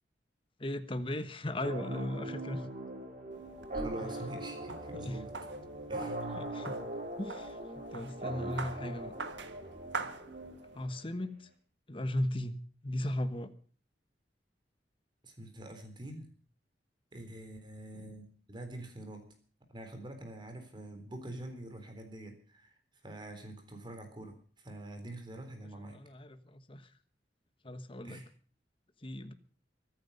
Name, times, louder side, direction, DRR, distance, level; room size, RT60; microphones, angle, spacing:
voice 1, 0.6-2.7 4.0-4.1 4.9-5.2 6.3-6.8 7.2-7.6 7.9-9.1 10.7-11.5 11.9-13.5 25.9-26.9 27.6-28.2 29.0-29.3, left 1 dB, 30° left, 10 dB, 1.3 m, -37 dB
sound 1, 1.6-11.0, right 1 dB, 45° right, 4.6 m, -41 dB
sound 2, 3.3-10.9, right 4 dB, 85° right, 1.6 m, -45 dB
voice 2, 3.7-5.4 5.9-6.2 15.2-16.3 17.1-19.3 19.7-22.7 23.0-24.3 24.6-26.0 28.0-28.3, right 1 dB, 25° right, 5 dB, 3.7 m, -45 dB
24.0 x 9.6 x 5.4 m, 0.43 s
head